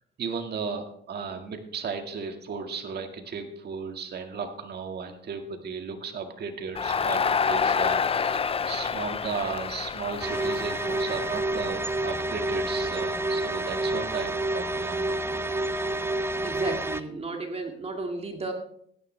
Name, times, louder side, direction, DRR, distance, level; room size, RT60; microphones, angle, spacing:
voice 1, 0.2-15.2, right 5 dB, 55° right, 5 dB, 1.9 m, -35 dB
Crowd, 6.7-11.9, left 6 dB, 30° left, 0.5 m, -28 dB
sound 1, 10.2-17.0, right 2 dB, 10° right, 0.6 m, -29 dB
voice 2, 16.4-18.5, right 3 dB, 30° right, 3 dB, 2.1 m, -33 dB
16.0 x 10.5 x 3.3 m, 0.68 s
cardioid pair, 90°, 20 cm